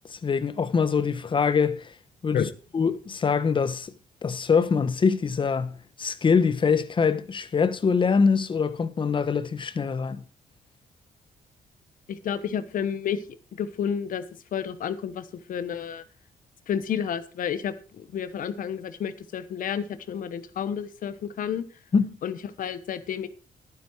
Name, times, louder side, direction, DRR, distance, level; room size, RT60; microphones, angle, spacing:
voice 1, 0.1-1.9 2.2-2.5 2.7-3.9 4.2-10.2 21.9-22.2, left 5 dB, 35° left, 1.0 m, -24 dB
voice 2, 12.1-13.2 13.5-14.2 14.5-16.0 16.7-21.6 22.2-23.3, left 8 dB, 65° left, 1.2 m, -30 dB
11.5 x 9.7 x 4.7 m
cardioid pair, 120°, 15 cm